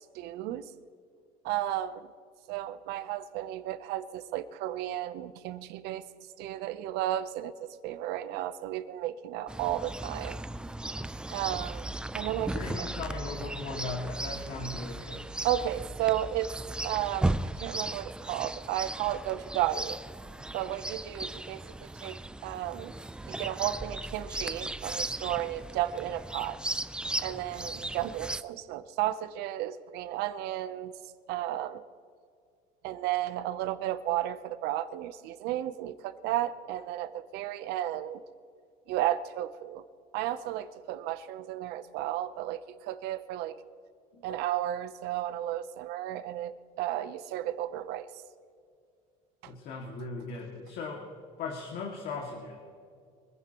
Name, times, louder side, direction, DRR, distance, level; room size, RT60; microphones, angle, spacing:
voice 1, 0.1-0.6 1.4-2.1 2.5-6.0 6.4-10.4 11.3-11.8 12.1-12.9 15.4-16.6 16.8-20.0 20.5-22.9 23.3-26.6 27.2-30.9 31.3-31.8 32.8-38.2 38.9-39.8 40.1-43.6 44.2-48.1 49.4-49.5, right 13 dB, 85° right, 13 dB, 0.8 m, -33 dB
Chirp tweet, 9.5-28.4, right 2 dB, 5° right, 0.4 m, -36 dB
voice 2, 12.5-15.2 44.1-44.2 49.5-51.0 51.4-52.6, left 4 dB, 70° left, 0 dB, 2.2 m, -38 dB
24.5 x 15.0 x 3.0 m, 2.3 s
cardioid pair, 120°, 16 cm